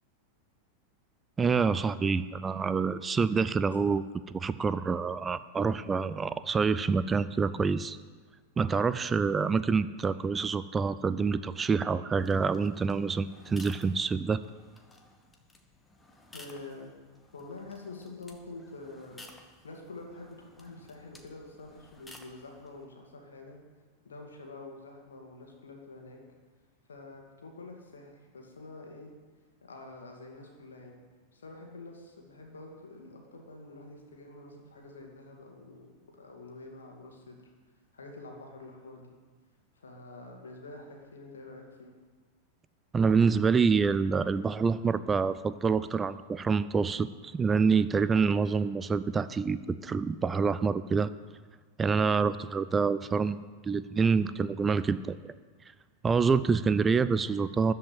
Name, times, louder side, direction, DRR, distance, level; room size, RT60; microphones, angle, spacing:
voice 1, 1.4-8.0 8.6-14.4 42.9-51.1 51.8-53.4 53.6-55.2 56.0-57.7, right 5 dB, 15° right, 14 dB, 0.4 m, -27 dB
sound 1, 12.2-22.9, left 2 dB, 10° left, 1.4 m, -55 dB
voice 2, 16.3-16.9 17.3-19.2 19.6-23.6 24.0-26.2 26.9-29.1 29.6-31.0 31.3-37.5 37.9-39.2 39.8-41.9, left 2 dB, 70° left, 1 dB, 2.3 m, -47 dB
14.0 x 5.6 x 9.1 m, 1.4 s
figure-of-eight pair, 90°, 0 cm